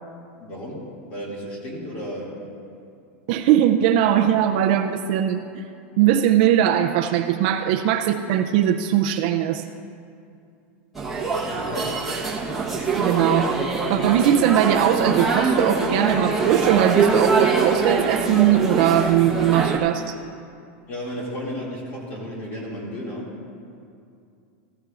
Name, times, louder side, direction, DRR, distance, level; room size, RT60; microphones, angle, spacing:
voice 1, 0.4-2.4 11.6-12.1 20.9-23.3, equal, 25° left, -3 dB, 2.3 m, -33 dB
voice 2, 3.3-5.6 6.0-9.7 12.9-20.2, right 10 dB, 40° right, 7 dB, 0.4 m, -20 dB
sound 1, 10.9-19.8, right 4 dB, 5° right, 1.1 m, -23 dB
15.0 x 14.5 x 2.4 m, 2.5 s
supercardioid pair, 180°, 7 cm